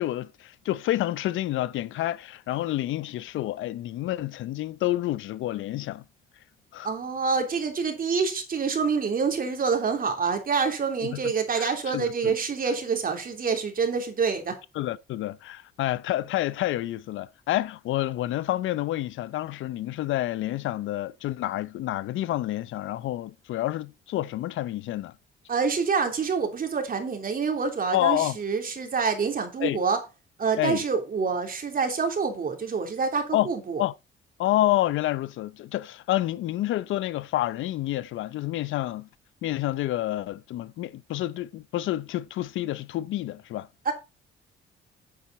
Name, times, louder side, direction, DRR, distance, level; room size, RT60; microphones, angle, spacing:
voice 1, 0.0-6.0 6.7-6.9 11.0-11.2 11.6-12.4 14.7-25.1 27.9-28.4 29.6-29.8 30.6-30.8 33.3-33.5 33.8-33.9 34.4-39.1 39.4-43.7, left 14 dB, 80° left, 0.6 m, -28 dB
voice 2, 6.8-14.5 25.5-30.0 30.4-33.8 43.8-43.9, right 5 dB, 45° right, 3.3 m, -27 dB
9.2 x 8.5 x 4.1 m
cardioid pair, 90°, 20 cm